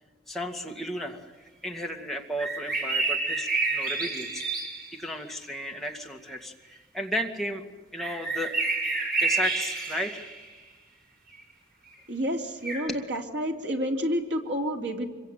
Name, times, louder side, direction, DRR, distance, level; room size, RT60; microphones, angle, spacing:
voice 1, 0.3-4.7 4.9-7.6 7.9-8.5 9.2-10.2 12.9-13.0, equal, ahead, 0 dB, 2.2 m, -34 dB
sound 1, 2.4-5.1 8.0-10.4 11.9-12.0 12.6-12.8, right 3 dB, 50° right, 7.0 m, -29 dB
voice 2, 12.1-15.1, equal, 75° right, 2 dB, 3.4 m, -29 dB
25.5 x 23.5 x 9.2 m, 1.3 s
head